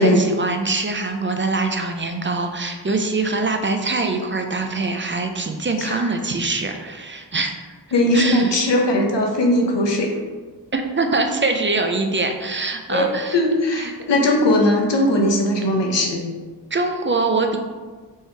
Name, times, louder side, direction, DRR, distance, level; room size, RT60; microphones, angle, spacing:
voice 1, 0.0-7.7 8.1-8.5 8.8-8.9 10.7-13.4 13.7-13.9 16.7-17.6, right 3 dB, 30° right, 5 dB, 0.5 m, -23 dB
voice 2, 5.8-6.1 7.9-10.1 12.9-16.2, left 1 dB, 75° left, 1 dB, 0.8 m, -19 dB
4.6 x 3.0 x 3.3 m, 1.4 s
wide cardioid pair, 50°, 43 cm